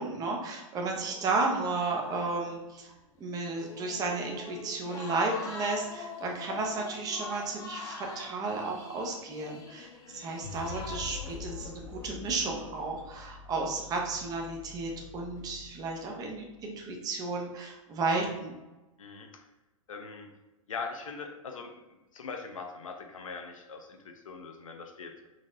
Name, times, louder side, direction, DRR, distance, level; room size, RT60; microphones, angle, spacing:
voice 1, 0.0-2.9 3.2-9.9 10.1-18.6, right 3 dB, 20° right, 0 dB, 0.7 m, -33 dB
sound 1, 1.0-2.7 2.9-3.0 3.5-12.1, left 4 dB, 20° left, 0.5 m, -44 dB
sound 2, 10.4-16.6, left 5 dB, 40° left, 0.9 m, -45 dB
voice 2, 19.0-19.4 19.9-20.3 20.7-21.7 22.1-25.3, left 4 dB, 70° left, 3 dB, 0.6 m, -41 dB
3.9 x 2.9 x 2.6 m, 1.0 s
figure-of-eight pair, 105°, 18 cm